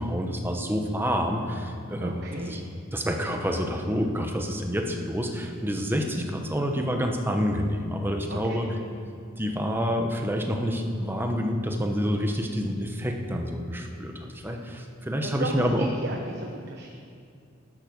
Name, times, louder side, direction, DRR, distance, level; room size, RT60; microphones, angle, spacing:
voice 1, 0.0-2.6 2.9-8.7 9.4-15.9, equal, 10° right, 3 dB, 1.0 m, -28 dB
voice 2, 2.0-2.7 8.3-8.6 15.2-15.6 16.0-16.9, right 2 dB, 55° right, 1 dB, 1.0 m, -36 dB
12.0 x 9.4 x 6.2 m, 2.4 s
head